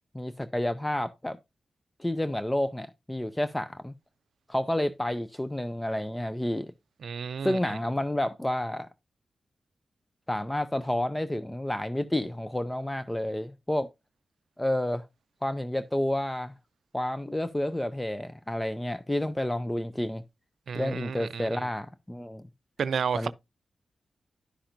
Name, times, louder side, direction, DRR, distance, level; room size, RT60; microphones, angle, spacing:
voice 1, 0.1-1.4 2.0-3.9 4.5-6.7 7.4-8.9 10.3-13.9 14.6-15.0 15.4-16.5 16.9-20.2 20.7-22.5 23.1-23.3, left 1 dB, 10° left, 0.5 m, -30 dB
voice 2, 7.0-7.8 20.7-21.7 22.8-23.3, right 6 dB, 80° right, 0.4 m, -32 dB
11.5 x 5.8 x 2.5 m
cardioid pair, 80°, 0 cm